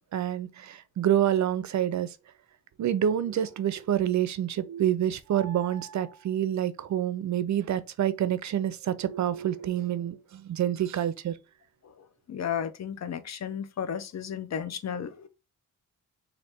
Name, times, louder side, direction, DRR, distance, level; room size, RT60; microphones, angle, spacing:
voice 1, 0.0-2.2 2.8-11.4, right 10 dB, 60° right, 0.5 m, -27 dB
voice 2, 12.3-15.3, left 8 dB, 55° left, 0.6 m, -33 dB
3.3 x 2.6 x 4.3 m
cardioid pair, 90°, 33 cm